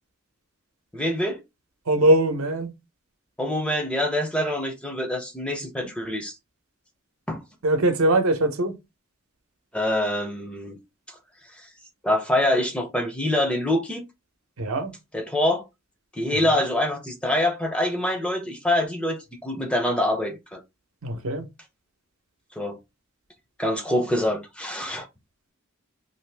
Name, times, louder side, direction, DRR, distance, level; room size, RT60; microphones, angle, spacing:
voice 1, 0.9-1.4 3.4-6.3 7.3-7.4 9.7-10.8 11.6-11.7 12.0-14.0 15.1-15.6 16.1-20.6 22.6-22.8 23.6-25.1, left 1 dB, 5° left, 0.5 m, -25 dB
voice 2, 1.9-2.7 7.6-8.7 14.6-14.9 21.0-21.4, right 1 dB, 75° right, 0.7 m, -21 dB
2.6 x 2.5 x 3.2 m
head